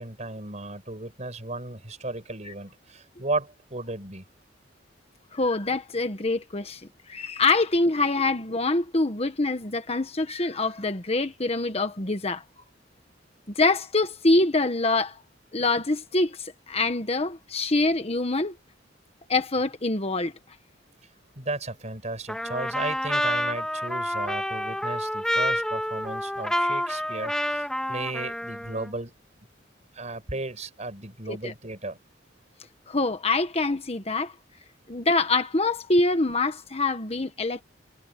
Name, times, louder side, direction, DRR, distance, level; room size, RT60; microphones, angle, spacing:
voice 1, 0.0-4.2 21.4-29.1 29.9-32.0, right 2 dB, 35° right, 5.8 m, -34 dB
voice 2, 5.3-6.8 7.1-12.4 13.5-15.2 15.5-18.6 19.3-20.3 31.3-31.5 32.9-34.3 34.9-37.6, left 2 dB, 30° left, 1.4 m, -25 dB
Trumpet, 22.3-28.9, left 1 dB, 5° left, 1.7 m, -28 dB
head